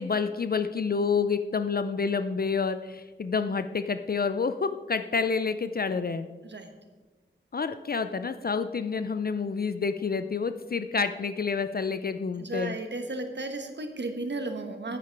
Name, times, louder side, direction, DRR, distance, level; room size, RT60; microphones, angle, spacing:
voice 1, 0.0-6.3 7.5-12.8, left 5 dB, 50° left, 10 dB, 0.4 m, -28 dB
voice 2, 12.4-15.0, right 2 dB, 60° right, 6 dB, 1.2 m, -34 dB
9.9 x 8.3 x 4.6 m, 1.3 s
wide cardioid pair, 75°, 20 cm